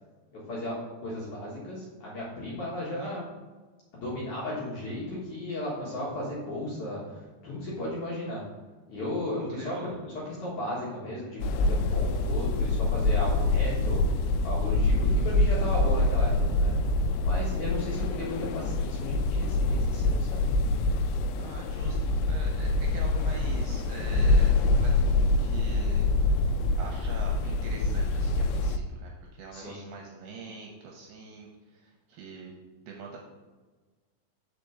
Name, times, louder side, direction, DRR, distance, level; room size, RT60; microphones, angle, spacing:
voice 1, 0.3-3.2 4.0-8.4 8.9-14.0 14.4-16.7 17.2-20.5 29.5-29.8, left 1 dB, 55° left, -6 dB, 2.4 m, -35 dB
voice 2, 9.4-9.9 21.4-26.1 26.8-32.5 32.8-33.2, right 4 dB, 75° right, 0 dB, 2.4 m, -44 dB
sound 1, 11.4-28.8, left 2 dB, 85° left, 2.9 m, -25 dB
5.8 x 5.0 x 6.7 m, 1.3 s
omnidirectional pair, 5.3 m